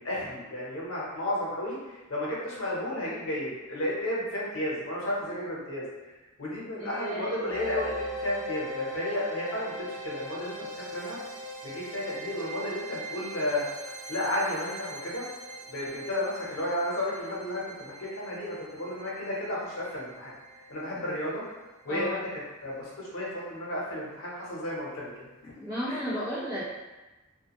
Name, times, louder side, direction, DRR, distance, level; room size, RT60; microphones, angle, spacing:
voice 1, 0.0-5.8 6.4-11.2 11.6-15.2 15.7-20.3 20.7-21.4 21.8-25.5 25.9-26.0, left 1 dB, 80° left, -5 dB, 0.8 m, -33 dB
voice 2, 6.8-7.4 21.9-22.2 25.6-26.6, equal, 20° right, -12 dB, 1.0 m, -34 dB
sound 1, 7.5-22.5, equal, 35° right, 0.4 m, -41 dB
2.4 x 2.3 x 2.9 m, 1.1 s
head